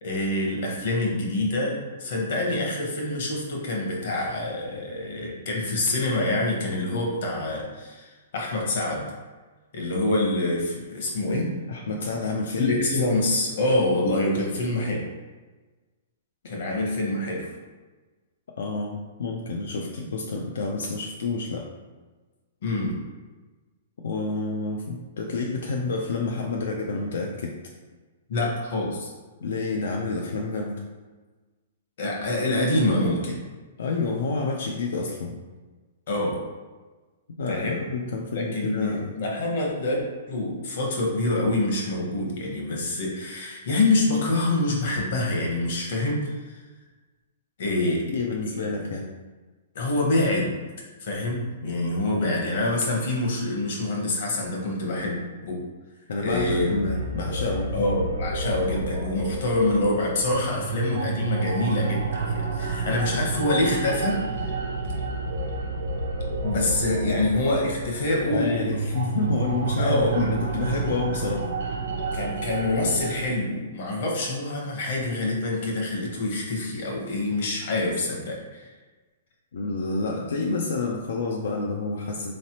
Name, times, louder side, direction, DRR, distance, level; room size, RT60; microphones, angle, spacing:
voice 1, 0.0-9.1 9.7-11.5 12.6-15.1 16.4-17.5 22.6-23.0 28.3-29.1 32.0-33.4 36.1-36.4 37.5-37.8 38.3-40.0 40.3-46.5 47.6-48.2 48.5-48.6 49.7-50.6 51.0-55.2 55.4-55.6 56.2-56.7 57.7-64.2 66.4-68.8 69.8-70.3 72.1-78.7, left 2 dB, 50° left, -1 dB, 1.0 m, -26 dB
voice 2, 11.7-12.7 18.6-21.7 24.0-27.6 29.4-30.9 33.8-35.4 37.4-39.1 48.1-49.1 56.1-57.8 67.1-67.2 68.3-71.5 79.5-82.3, left 3 dB, 75° left, 0 dB, 0.4 m, -29 dB
sound 1, 56.3-73.3, right 3 dB, 65° right, 0.5 m, -30 dB
4.0 x 3.1 x 2.9 m, 1.3 s
hypercardioid pair, 175°, 0 cm